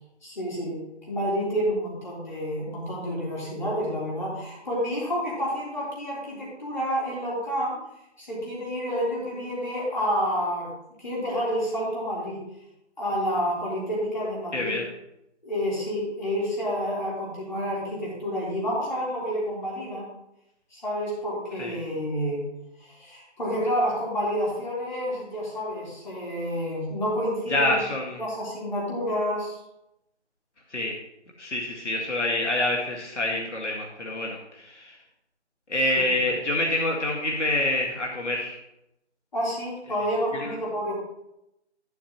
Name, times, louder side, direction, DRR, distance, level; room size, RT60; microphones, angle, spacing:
voice 1, 0.2-0.8 1.1-7.8 8.2-10.7 11.0-12.4 13.0-14.8 15.4-20.1 20.7-22.4 23.0-27.9 28.2-29.6 35.9-36.2 39.3-40.9, equal, 40° left, -5 dB, 3.9 m, -29 dB
voice 2, 14.5-14.8 21.6-21.8 27.5-28.2 30.7-30.9 31.4-34.9 35.7-38.6 40.3-40.5, left 1 dB, 80° left, -1 dB, 2.0 m, -26 dB
11.5 x 8.9 x 3.1 m, 0.84 s
figure-of-eight pair, 175°, 35 cm